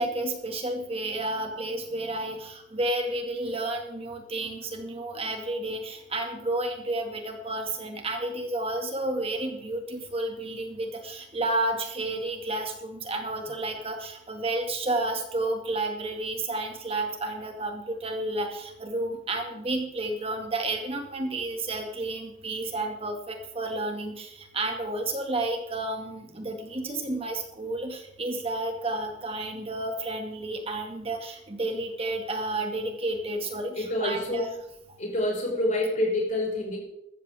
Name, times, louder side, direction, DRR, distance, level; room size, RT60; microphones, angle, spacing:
voice 1, 0.0-34.5, right 2 dB, 35° right, 4 dB, 2.3 m, -31 dB
voice 2, 33.8-34.5 35.0-36.8, left 1 dB, 45° left, -2 dB, 5.5 m, -27 dB
14.5 x 14.0 x 3.7 m, 0.81 s
head